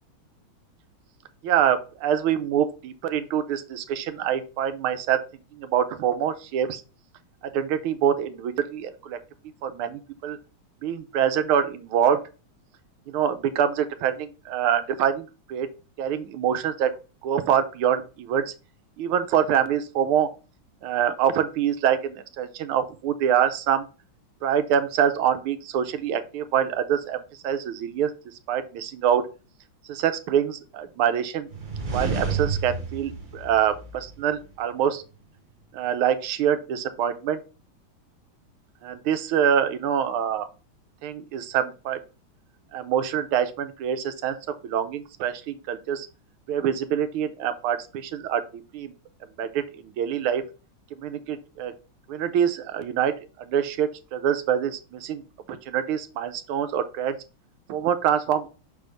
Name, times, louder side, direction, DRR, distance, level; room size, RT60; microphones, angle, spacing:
voice 1, 1.4-5.2 5.5-6.8 7.4-9.2 9.6-10.4 10.8-12.2 13.1-15.7 16.0-16.9 17.2-18.5 19.0-20.3 20.8-23.9 24.4-28.1 28.5-29.2 29.8-31.5 31.9-35.0 35.7-37.4 38.8-40.5 41.0-42.0 42.7-44.4 44.6-46.1 46.5-48.9 49.4-50.4 50.9-51.7 52.1-57.2 57.7-58.5, right 9 dB, 90° right, 11 dB, 1.6 m, -25 dB
sound 1, 31.5-34.5, right 4 dB, 50° right, 0.5 m, -31 dB
6.1 x 3.5 x 5.1 m, 0.33 s
omnidirectional pair, 2.3 m